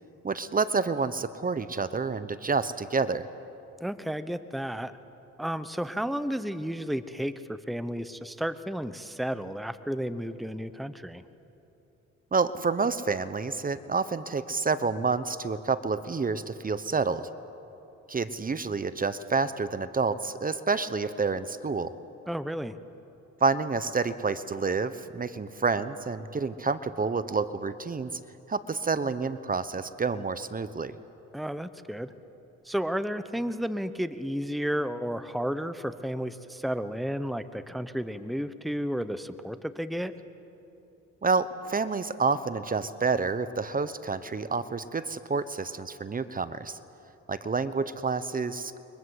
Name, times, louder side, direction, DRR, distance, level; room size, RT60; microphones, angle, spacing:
voice 1, 0.2-3.2 12.3-17.3 18.1-21.9 23.4-28.1 28.5-30.9 41.2-46.8 47.3-48.8, right 4 dB, 30° right, 13 dB, 1.0 m, -28 dB
voice 2, 3.8-4.9 5.4-11.2 22.3-22.8 31.3-32.1 32.6-40.1, equal, ahead, 11 dB, 1.0 m, -32 dB
29.0 x 23.5 x 8.1 m, 2.9 s
cardioid pair, 90°, 30 cm